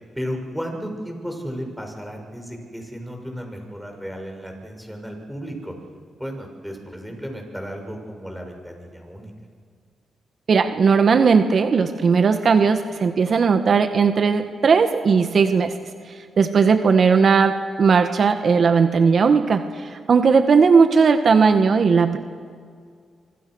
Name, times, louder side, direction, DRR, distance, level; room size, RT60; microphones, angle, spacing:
voice 1, 0.1-5.7 6.2-9.3, equal, ahead, 3 dB, 6.5 m, -34 dB
voice 2, 10.5-15.7 16.4-17.5 17.8-22.2, right 5 dB, 60° right, 7 dB, 1.5 m, -17 dB
26.0 x 25.5 x 6.4 m, 2.1 s
cardioid pair, 65°, 0 cm